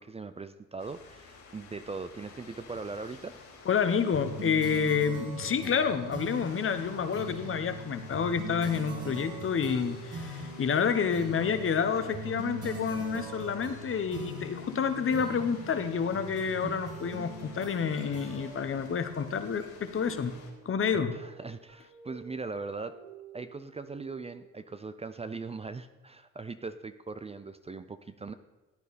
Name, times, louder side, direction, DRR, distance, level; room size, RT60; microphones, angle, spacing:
voice 1, 0.0-3.4 21.1-23.0 23.3-28.3, right 4 dB, 20° right, 11 dB, 0.5 m, -40 dB
sound 1, 0.8-20.5, left 4 dB, 70° left, 3.7 m, -53 dB
voice 2, 3.7-20.4 20.6-21.1, left 6 dB, 45° left, 9 dB, 1.1 m, -29 dB
sound 2, 4.1-20.0, right 1 dB, 55° right, 2.8 m, -42 dB
sound 3, 9.2-24.6, right 4 dB, 75° right, 5.0 m, -52 dB
15.5 x 9.2 x 4.2 m, 1.1 s
cardioid pair, 90°, 30 cm